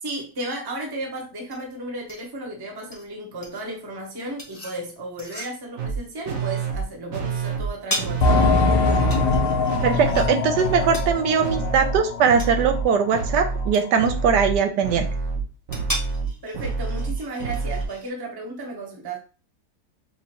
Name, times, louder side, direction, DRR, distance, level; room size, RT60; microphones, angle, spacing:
voice 1, 0.0-8.7 16.4-19.2, right 2 dB, 20° right, 0.6 m, -34 dB
sound 1, 0.8-18.1, equal, 15° left, 0.8 m, -39 dB
sound 2, 5.8-6.0 6.3-6.8 7.1-7.7 8.0-8.6 8.8-9.4 9.7-10.3 10.5-11.1 11.4-12.0 12.3-12.9 13.1-13.7 14.0-17.9, right 5 dB, 55° right, 1.2 m, -27 dB
sound 3, 8.2-12.5 12.8-12.9 13.5-13.6, left 3 dB, 75° left, 1.2 m, -22 dB
voice 2, 9.8-15.1, right 6 dB, 80° right, 1.2 m, -20 dB
5.9 x 2.5 x 2.9 m
omnidirectional pair, 1.9 m